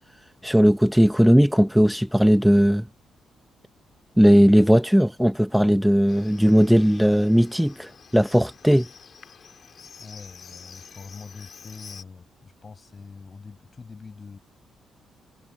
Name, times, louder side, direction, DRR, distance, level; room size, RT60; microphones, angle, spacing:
voice 1, 0.4-2.9 4.2-8.9, equal, ahead, 0.6 m, -18 dB
Livestock farm animals working animals, 6.1-12.0, left 6 dB, 50° left, 4.0 m, -47 dB
voice 2, 10.0-14.4, left 4 dB, 35° left, 5.2 m, -43 dB
cardioid pair, 90°, 0 cm